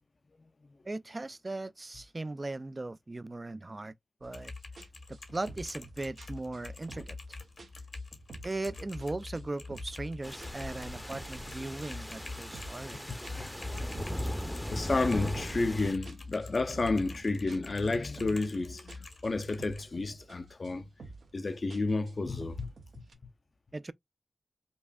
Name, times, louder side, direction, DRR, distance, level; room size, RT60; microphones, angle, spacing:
voice 1, 0.8-4.0 4.2-4.5 5.1-7.2 8.4-13.1 23.7-23.9, right 2 dB, 40° right, 0.3 m, -38 dB
sound 1, 4.2-4.4 4.8-7.3 7.6-9.1 9.3-10.1 10.4-12.9 13.2-15.7 16.1-18.6 18.9-20.4 20.6-21.4 21.7-23.1, right 3 dB, 85° right, 0.8 m, -50 dB
Typing, 4.3-19.8, left 3 dB, 75° left, 1.2 m, -46 dB
sound 2, 10.2-15.9, equal, 10° left, 0.6 m, -38 dB
voice 2, 14.7-20.9 21.3-22.7, left 3 dB, 55° left, 0.5 m, -31 dB
5.2 x 2.4 x 2.3 m
cardioid pair, 45°, 0 cm